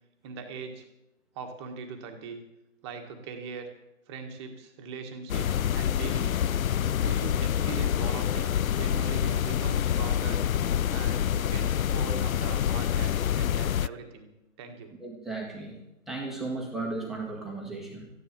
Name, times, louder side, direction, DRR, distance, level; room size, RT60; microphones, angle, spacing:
voice 1, 0.2-0.8 1.3-2.4 2.8-3.7 4.1-6.5 7.0-10.4 10.9-14.3 14.6-14.9, right 5 dB, 20° right, 5 dB, 1.5 m, -40 dB
sound 1, 5.3-13.9, left 9 dB, 75° left, 0.5 m, -27 dB
voice 2, 15.0-15.8 16.1-18.1, right 3 dB, ahead, -1 dB, 1.3 m, -35 dB
14.0 x 10.5 x 7.3 m, 0.87 s
hypercardioid pair, 155°, 42 cm